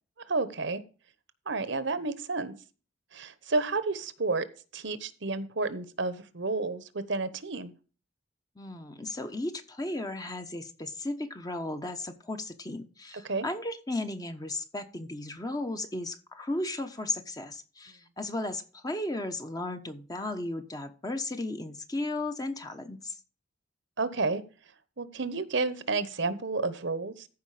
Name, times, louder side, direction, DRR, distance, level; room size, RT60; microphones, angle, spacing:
voice 1, 0.3-0.8 1.5-2.5 3.1-4.5 4.7-7.7 13.2-13.5 24.0-24.4 25.0-27.3, right 3 dB, 60° right, 14 dB, 1.0 m, -31 dB
voice 2, 8.6-23.2, left 2 dB, 20° left, 7 dB, 1.0 m, -35 dB
14.5 x 5.1 x 4.9 m, 0.36 s
head